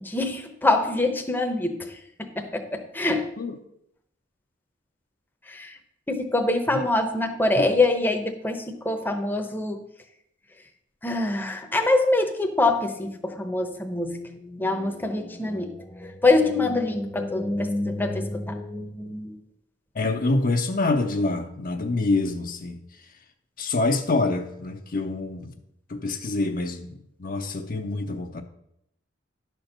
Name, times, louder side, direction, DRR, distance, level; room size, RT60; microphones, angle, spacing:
voice 1, 0.0-1.9 2.2-3.3 5.5-5.8 6.1-9.8 11.0-19.4, left 2 dB, 10° left, 4 dB, 0.8 m, -25 dB
voice 2, 19.9-22.8 23.6-25.5 25.9-26.9 27.2-28.4, left 2 dB, 45° left, 5 dB, 0.7 m, -26 dB
11.0 x 4.5 x 6.6 m, 0.77 s
head